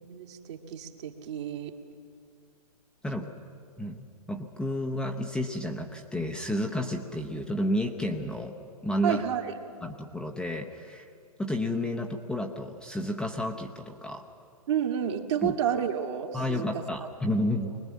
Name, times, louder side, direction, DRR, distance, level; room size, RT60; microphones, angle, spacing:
voice 1, 0.0-1.7 3.2-3.3 9.0-9.4 14.7-16.7, right 9 dB, 45° right, 3 dB, 1.8 m, -30 dB
voice 2, 3.8-9.2 9.8-11.0 11.4-14.3 15.4-15.5 16.3-17.8, left 1 dB, 5° left, 1 dB, 0.8 m, -31 dB
24.0 x 20.0 x 7.3 m, 2.3 s
figure-of-eight pair, 115°, 20 cm